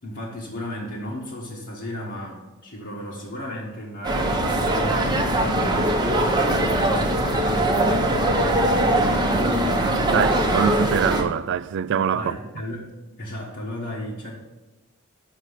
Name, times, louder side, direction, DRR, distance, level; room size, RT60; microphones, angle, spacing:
voice 1, 0.0-10.1 12.1-12.9 13.2-14.3, equal, 55° left, 1.4 m, -34 dB
sound 1, 4.0-11.2, right 1 dB, 20° right, 0.9 m, -21 dB
voice 2, 10.1-12.4, right 7 dB, 55° right, 0.3 m, -24 dB
6.4 x 6.0 x 6.6 m
head